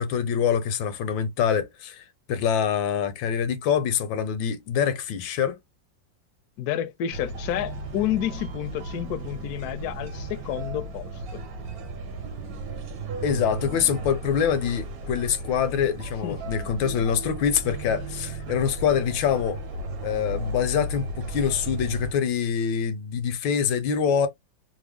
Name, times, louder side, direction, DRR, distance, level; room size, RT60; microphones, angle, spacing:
voice 1, 0.0-5.6 13.2-19.6 20.0-24.3, left 8 dB, 85° left, 1.5 m, -25 dB
voice 2, 6.6-11.4 16.2-16.4, left 11 dB, 70° left, 1.0 m, -30 dB
sound 1, 7.1-22.1, right 2 dB, 60° right, 1.2 m, -35 dB
3.4 x 2.1 x 3.4 m
omnidirectional pair, 2.0 m